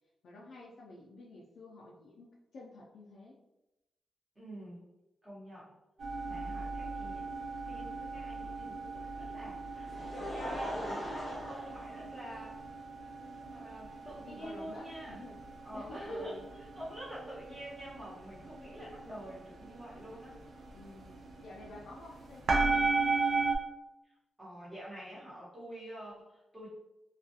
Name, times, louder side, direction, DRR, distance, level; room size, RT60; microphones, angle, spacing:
voice 1, 0.2-3.4 6.4-6.6 14.2-15.4 15.7-16.4 20.7-21.1 21.4-23.1, left 2 dB, 75° left, -3 dB, 0.4 m, -50 dB
voice 2, 4.3-4.9 5.2-5.7 6.2-12.6 13.1-15.2 15.6-20.4 24.0-24.1 24.4-26.7, equal, 15° right, -8 dB, 1.0 m, -47 dB
sound 1, 6.0-23.6, right 3 dB, 60° right, 0.4 m, -37 dB
Laughter, 9.4-12.7 13.5-13.6 15.1-15.2, equal, 25° left, 0.7 m, -40 dB
2.3 x 2.3 x 2.7 m, 0.94 s
wide cardioid pair, 130°, 0 cm